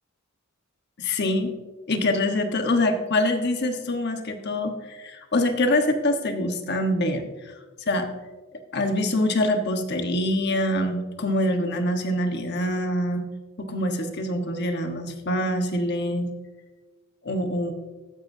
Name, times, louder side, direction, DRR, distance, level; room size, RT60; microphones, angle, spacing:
voice 1, 1.0-1.5 1.9-7.2 7.9-8.1 8.7-13.2 13.6-16.3 17.2-17.7, left 1 dB, 55° left, 5 dB, 1.2 m, -25 dB
14.5 x 11.5 x 2.7 m, 1.3 s
head